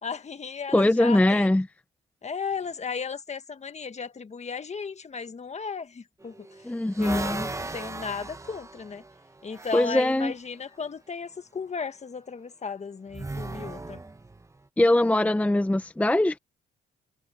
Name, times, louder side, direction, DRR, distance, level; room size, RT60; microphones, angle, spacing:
voice 1, 0.0-1.5 2.2-6.4 7.0-9.0 9.4-14.0, left 5 dB, 35° left, 1.5 m, -35 dB
voice 2, 0.7-1.7 6.6-7.5 9.7-10.3 14.8-16.4, left 1 dB, 5° left, 0.7 m, -22 dB
sound 1, 6.2-10.1 13.1-14.6, right 2 dB, 15° right, 1.1 m, -37 dB
cardioid pair, 90°, 20 cm